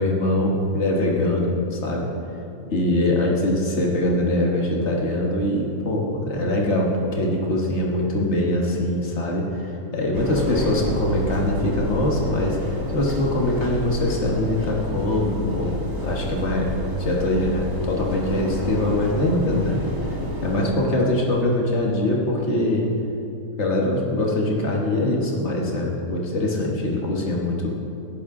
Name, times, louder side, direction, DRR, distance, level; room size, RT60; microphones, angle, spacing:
voice 1, 0.0-2.1 2.7-15.7 16.0-16.7 17.0-19.8 20.1-22.9 23.6-27.7, left 1 dB, 85° left, -1 dB, 0.6 m, -23 dB
sound 1, 10.1-20.7, left 1 dB, 25° right, 0.4 m, -29 dB
18.0 x 11.0 x 3.7 m, 2.9 s
omnidirectional pair, 3.4 m